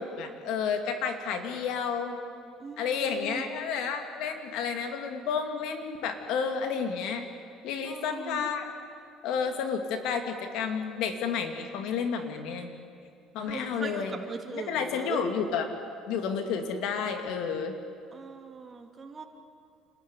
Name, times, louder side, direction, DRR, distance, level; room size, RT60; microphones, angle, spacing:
voice 1, 0.0-2.2 2.8-7.2 7.6-8.7 9.2-12.7 13.3-14.2 14.5-15.7 16.1-17.8, left 6 dB, 75° left, 6 dB, 2.5 m, -31 dB
voice 2, 2.6-3.4 7.8-8.5 13.4-15.2 18.1-19.3, right 4 dB, 30° right, 4 dB, 2.3 m, -40 dB
27.5 x 13.5 x 9.8 m, 2.4 s
cardioid pair, 110°, 0 cm